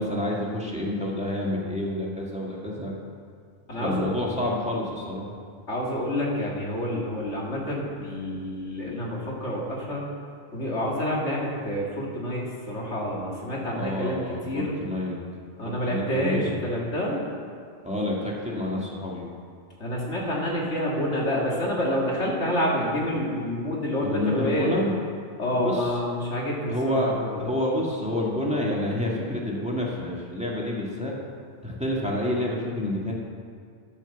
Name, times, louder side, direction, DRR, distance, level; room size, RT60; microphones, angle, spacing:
voice 1, 0.0-2.9 3.8-5.3 13.8-15.2 15.6-16.6 17.8-19.3 24.0-24.9 25.5-25.9 26.7-31.1 31.6-33.1, left 1 dB, 5° right, -4 dB, 2.0 m, -28 dB
voice 2, 3.7-4.1 5.7-10.0 10.5-14.2 14.4-14.8 15.6-17.2 19.8-24.8 25.4-27.5, equal, 85° left, -3 dB, 2.6 m, -28 dB
10.5 x 8.9 x 7.1 m, 2.1 s
omnidirectional pair, 1.2 m